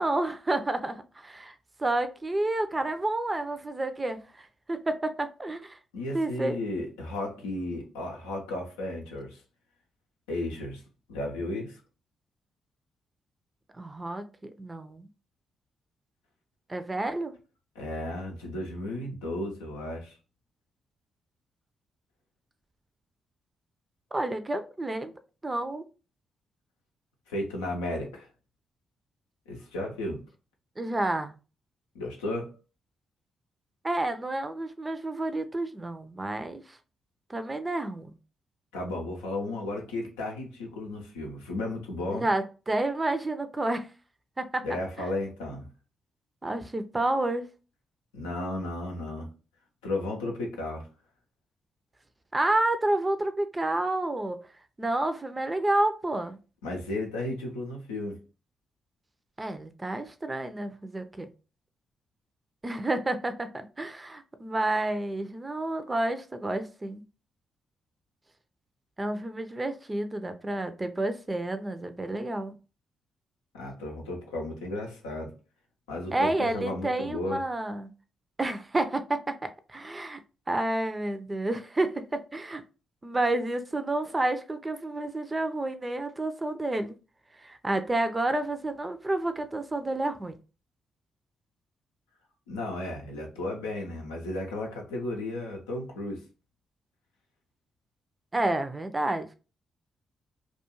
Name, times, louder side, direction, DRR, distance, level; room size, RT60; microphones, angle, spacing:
voice 1, 0.0-1.5 1.8-5.8 6.1-6.6 13.7-15.1 16.7-17.3 24.1-25.1 25.4-25.8 30.8-31.4 33.8-36.8 37.3-38.1 42.1-43.9 44.4-44.6 46.4-47.5 52.3-54.4 54.8-56.4 59.4-61.3 62.6-67.0 69.0-72.5 76.1-77.9 78.4-80.2 80.5-82.6 83.0-86.9 87.4-90.3 98.3-99.3, right 2 dB, 25° right, 0.5 m, -30 dB
voice 2, 5.9-9.4 10.3-10.8 11.1-11.8 17.7-20.2 27.3-28.3 29.5-30.2 31.9-32.6 38.7-42.3 44.6-45.7 48.1-49.3 49.8-50.9 56.6-58.2 73.5-75.3 75.9-77.4 92.5-96.2, left 2 dB, 85° left, 0.5 m, -34 dB
2.3 x 2.3 x 2.9 m
hypercardioid pair, 40°, 0 cm